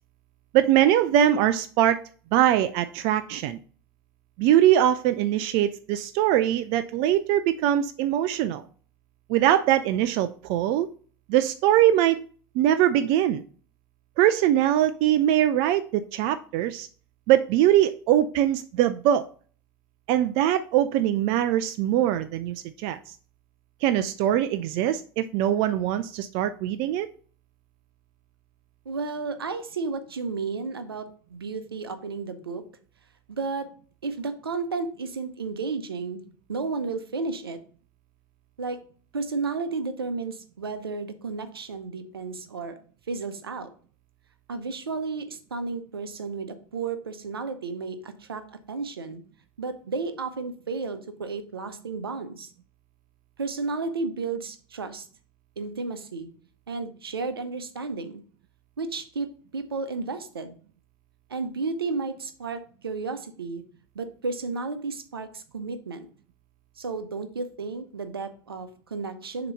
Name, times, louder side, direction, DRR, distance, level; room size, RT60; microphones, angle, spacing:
voice 1, 0.5-2.0 2.3-3.6 4.4-8.6 9.3-10.9 11.3-12.2 12.5-13.4 14.2-16.9 17.3-19.3 20.1-23.0 23.8-27.1, right 12 dB, 50° right, 12 dB, 0.4 m, -22 dB
voice 2, 28.9-32.6 33.3-33.7 34.0-36.2 36.5-37.6 38.6-38.8 39.1-42.8 43.1-43.7 44.5-49.2 49.6-52.5 53.4-55.1 55.6-56.3 56.7-58.2 58.8-60.5 61.3-63.6 63.9-66.1 66.8-69.5, right 4 dB, 80° right, 10 dB, 0.7 m, -32 dB
6.7 x 2.9 x 5.3 m, 0.43 s
figure-of-eight pair, 75°, 12 cm